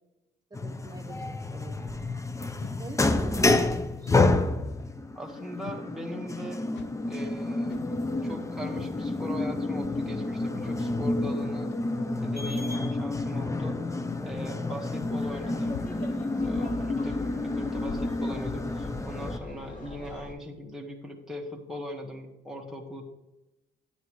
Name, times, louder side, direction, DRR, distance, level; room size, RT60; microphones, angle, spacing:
sound 1, 0.5-19.4, left 2 dB, 15° left, 0.6 m, -29 dB
voice 1, 0.5-2.1 2.8-4.2, right 2 dB, 20° right, 1 dB, 1.4 m, -44 dB
sound 2, 2.5-2.9 4.0-4.4 5.6-6.0 6.7-7.1 7.7-7.9 8.9-9.1 9.8-10.0 10.8-10.9 11.7-11.8 12.4-12.5 13.1-13.4 14.1-14.3 15.0-15.1 15.7-16.1 16.5-16.8 17.2-17.4, left 6 dB, 65° left, 0.7 m, -44 dB
voice 2, 5.1-6.7 7.1-11.7 12.2-13.8 14.2-15.8 16.4-23.0, equal, ahead, -1 dB, 1.5 m, -40 dB
Laughter, 15.2-20.3, left 1 dB, 40° left, 2.4 m, -44 dB
9.5 x 9.4 x 3.1 m, 0.95 s
cardioid pair, 90°, 20 cm